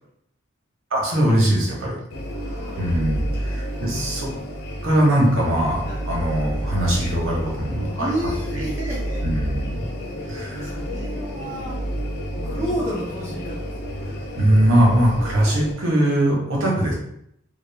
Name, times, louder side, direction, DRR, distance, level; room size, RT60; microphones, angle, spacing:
voice 1, 0.9-1.9 2.8-4.3 4.8-8.1 9.2-9.8 10.3-10.7 14.4-16.9, right 1 dB, 80° right, -3 dB, 0.9 m, -21 dB
sound 1, 2.1-15.7, equal, 50° left, 0.4 m, -30 dB
voice 2, 2.3-3.0 3.8-4.7 5.8-6.0 8.0-9.2 10.4-11.8 12.4-14.3, right 1 dB, 15° right, -8 dB, 0.6 m, -32 dB
2.4 x 2.1 x 3.2 m, 0.75 s
head